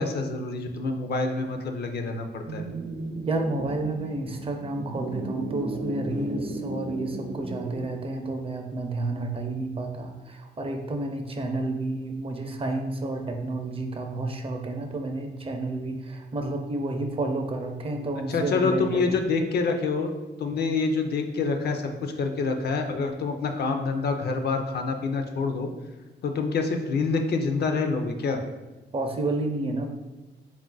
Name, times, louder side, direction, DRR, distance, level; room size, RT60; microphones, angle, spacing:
voice 1, 0.0-2.7 18.3-20.1 20.4-25.7 26.2-28.4, left 4 dB, 60° left, 6 dB, 0.5 m, -27 dB
sound 1, 2.5-7.8, right 2 dB, 65° right, 0.7 m, -35 dB
voice 2, 3.3-19.1 28.9-29.9, right 2 dB, 30° right, 4 dB, 0.5 m, -30 dB
3.9 x 2.4 x 3.8 m, 1.1 s
cardioid pair, 110°, 19 cm